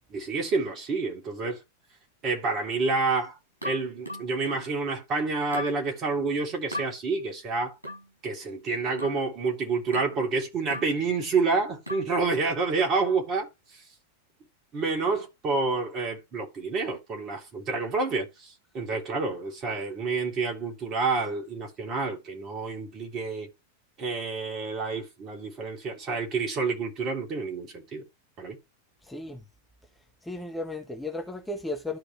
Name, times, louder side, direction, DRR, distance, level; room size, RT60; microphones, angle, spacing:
voice 1, 0.1-1.6 2.2-3.4 3.6-7.7 8.2-13.5 14.7-23.5 24.0-28.0 28.4-28.6, right 4 dB, 35° right, 3.3 m, -28 dB
sound 1, 3.6-4.7 5.5-5.8 6.7-6.9 7.8-8.1 9.0-9.3 9.9-10.2 10.7-11.0 11.9-12.2, left 1 dB, 85° right, 6.2 m, -36 dB
voice 2, 29.0-29.4 30.2-32.0, left 2 dB, 5° left, 1.3 m, -34 dB
13.0 x 4.8 x 3.3 m
figure-of-eight pair, 90°, 0 cm